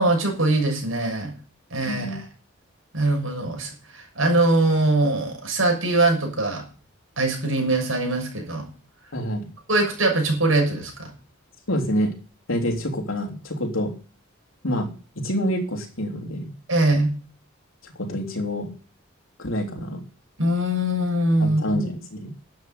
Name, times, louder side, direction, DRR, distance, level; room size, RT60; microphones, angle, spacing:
voice 1, 0.0-1.3 1.7-2.2 2.9-6.6 7.2-8.7 9.7-11.1 16.7-17.1 20.4-21.8, right 2 dB, 80° right, 3 dB, 6.6 m, -22 dB
voice 2, 1.8-2.2 9.1-9.5 11.7-12.1 12.5-13.9 14.6-16.5 17.8-18.7 19.4-20.0 21.4-22.3, equal, 80° left, 2 dB, 3.3 m, -27 dB
12.5 x 8.6 x 9.3 m, 0.38 s
head